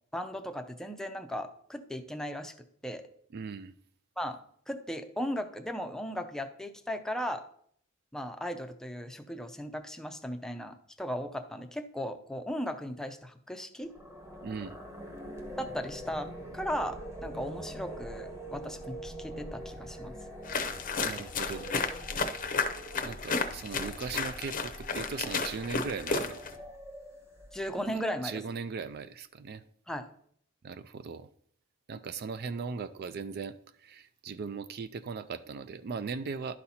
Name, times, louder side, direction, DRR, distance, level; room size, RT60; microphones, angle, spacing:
voice 1, 0.1-2.5 2.8-3.0 4.2-4.4 4.7-7.4 8.1-13.9 15.6-20.1 27.5-28.4 29.9-30.1, equal, 5° left, 0.5 m, -37 dB
voice 2, 3.3-3.7 14.4-14.8 21.0-21.7 23.0-26.4 27.9-29.6 30.6-31.3 31.9-36.5, right 5 dB, 50° right, 0.4 m, -38 dB
sound 1, 13.8-27.9, right 1 dB, 15° right, 1.1 m, -44 dB
sound 2, 20.4-26.6, left 4 dB, 40° left, 0.7 m, -33 dB
11.5 x 4.2 x 4.2 m
head